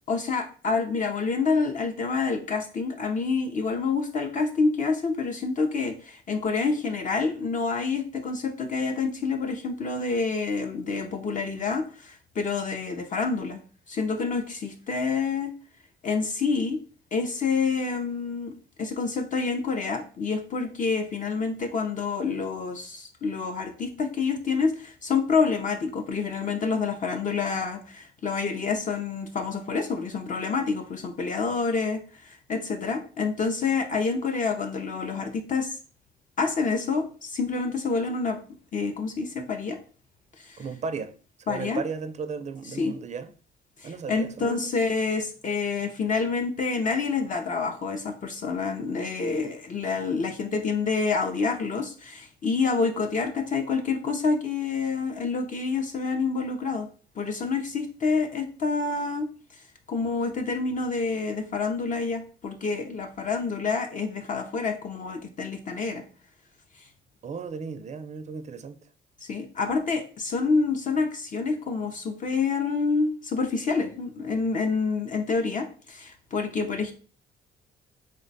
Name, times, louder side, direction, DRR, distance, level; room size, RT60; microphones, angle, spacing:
voice 1, 0.1-13.6 13.9-15.5 16.0-16.8 17.1-18.5 18.8-35.8 36.4-38.4 38.7-39.8 40.4-40.7 41.5-41.8 42.6-43.0 43.8-56.9 57.2-66.0 66.8-66.9 69.2-76.9, left 4 dB, 40° left, 0.5 m, -28 dB
voice 2, 40.6-41.1 41.5-43.3 43.8-44.6 67.2-68.8, right 5 dB, 35° right, 0.4 m, -35 dB
3.2 x 2.2 x 3.9 m
cardioid pair, 90°, 20 cm